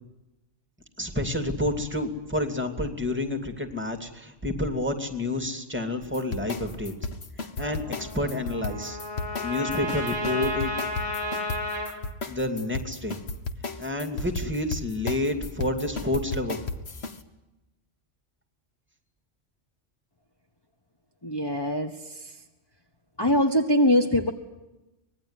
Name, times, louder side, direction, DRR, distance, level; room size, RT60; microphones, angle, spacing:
voice 1, 1.0-6.9 7.6-9.0 9.4-10.7 12.3-13.2 13.8-16.6, left 2 dB, 10° right, 6 dB, 2.6 m, -29 dB
sound 1, 6.1-17.2, left 3 dB, 60° left, 1.7 m, -34 dB
Trumpet, 7.6-11.9, left 1 dB, 80° left, 6.5 m, -32 dB
voice 2, 21.2-22.4 23.2-24.3, left 1 dB, 20° left, 4 dB, 1.4 m, -23 dB
25.5 x 20.5 x 9.8 m, 0.99 s
omnidirectional pair, 1.2 m